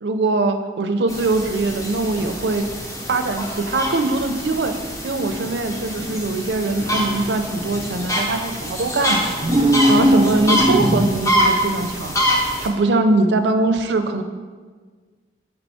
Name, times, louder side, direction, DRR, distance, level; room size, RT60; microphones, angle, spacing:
voice 1, 0.0-2.6 3.1-4.7 5.0-9.3 9.9-12.2 12.6-14.2, right 2 dB, 80° right, 7 dB, 0.5 m, -21 dB
sound 1, 1.1-12.7, equal, 20° left, 0.7 m, -25 dB
sound 2, 9.3-11.4, right 1 dB, 25° right, 0.4 m, -18 dB
6.5 x 4.4 x 4.2 m, 1.5 s
head